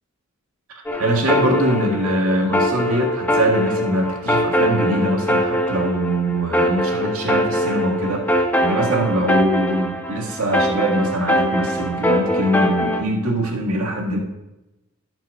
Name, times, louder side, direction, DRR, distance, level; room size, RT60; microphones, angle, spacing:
sound 1, 0.9-13.0, equal, 10° left, 0.8 m, -22 dB
voice 1, 1.0-8.3 8.6-14.2, right 1 dB, 80° right, 1 dB, 1.8 m, -22 dB
12.0 x 6.0 x 5.3 m, 0.99 s
head